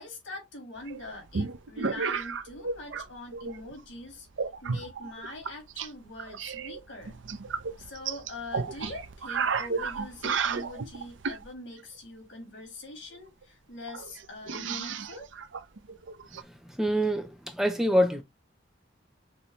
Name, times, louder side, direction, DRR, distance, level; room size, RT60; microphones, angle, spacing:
voice 1, 0.0-4.3 4.6-7.2 7.8-15.3, left 2 dB, 85° left, 3.4 m, -43 dB
sound 1, 0.9-3.1 3.3-3.8 4.4-5.9 6.2-11.5 13.1-13.2 13.4-13.5 13.9-16.4, right 5 dB, 80° right, 0.6 m, -33 dB
voice 2, 16.7-18.2, equal, ahead, 0.6 m, -25 dB
6.1 x 2.8 x 3.1 m
head